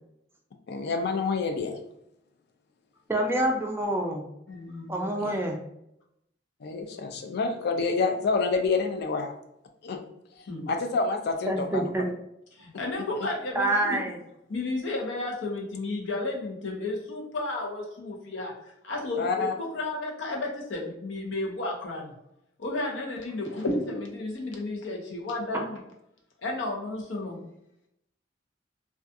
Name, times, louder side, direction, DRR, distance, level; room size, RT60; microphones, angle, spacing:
voice 1, 0.7-1.8 5.2-5.4 6.6-9.3 9.8-10.0 10.7-12.1 13.2-13.3 19.2-19.5, left 4 dB, 60° left, 5 dB, 0.4 m, -28 dB
voice 2, 3.1-4.2 4.9-5.6 11.5-12.1 13.6-14.2 25.5-25.6, right 1 dB, 15° right, 2 dB, 0.3 m, -27 dB
voice 3, 4.5-5.1 10.5-10.7 12.6-14.0 14.5-18.5 18.8-22.1 22.6-25.8 26.4-27.4, left 2 dB, 90° left, 0 dB, 0.7 m, -32 dB
2.3 x 2.3 x 2.6 m, 0.80 s
head